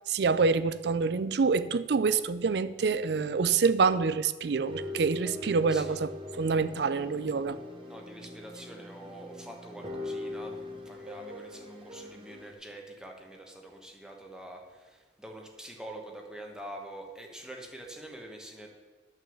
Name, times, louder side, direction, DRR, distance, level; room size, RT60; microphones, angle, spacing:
voice 1, 0.1-7.6, right 4 dB, 65° right, 13 dB, 0.4 m, -26 dB
sound 1, 4.6-12.5, left 2 dB, 30° right, 1.2 m, -41 dB
voice 2, 7.9-10.6 10.8-18.7, right 1 dB, 5° right, 1 dB, 1.3 m, -45 dB
11.0 x 6.4 x 7.1 m, 1.4 s
head